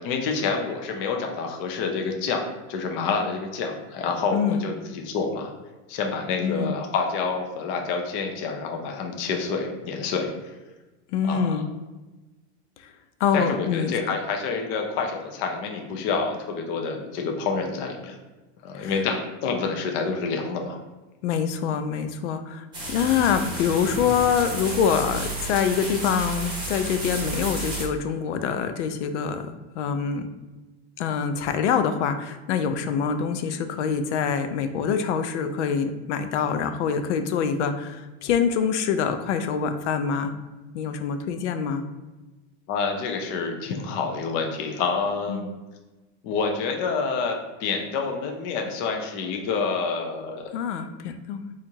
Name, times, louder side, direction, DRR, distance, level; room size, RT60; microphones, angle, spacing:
voice 1, 0.0-2.4 2.7-5.5 5.9-10.3 11.3-11.6 13.3-18.2 18.6-20.8 42.7-45.5 46.2-50.5, left 5 dB, 35° left, 3 dB, 0.4 m, -28 dB
voice 2, 4.3-4.6 6.4-6.7 11.1-11.7 12.8-12.9 13.2-13.9 18.7-18.9 21.2-30.3 31.0-40.3 40.7-41.8 45.3-45.5 50.5-51.5, left 7 dB, 85° left, 9 dB, 0.5 m, -25 dB
sound 1, 22.7-27.8, right 2 dB, 15° right, 0.9 m, -32 dB
4.4 x 2.5 x 2.7 m, 1.2 s
supercardioid pair, 155°, 34 cm